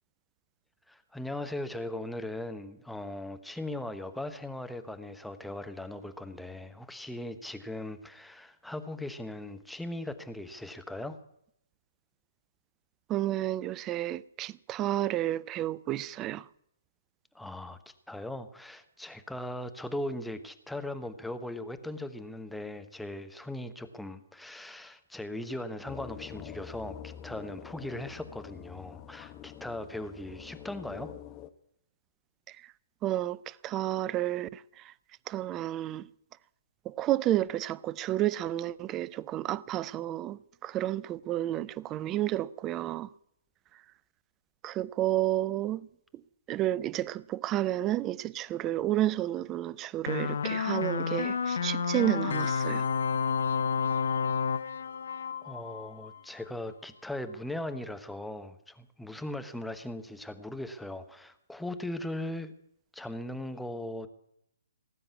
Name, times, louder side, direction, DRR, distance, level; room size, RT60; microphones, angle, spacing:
voice 1, 0.9-11.2 17.3-17.8 18.1-31.1 55.4-62.5 62.9-64.1, left 1 dB, 5° left, 1.0 m, -39 dB
voice 2, 13.1-16.5 32.5-32.7 33.0-34.9 35.3-36.1 36.8-43.1 44.6-45.9 46.5-52.9, right 14 dB, 25° right, 0.5 m, -31 dB
sound 1, 25.9-31.5, left 11 dB, 25° left, 0.9 m, -46 dB
sound 2, 50.1-56.2, left 6 dB, 60° left, 0.9 m, -30 dB
18.0 x 7.7 x 9.5 m
figure-of-eight pair, 125°, 0 cm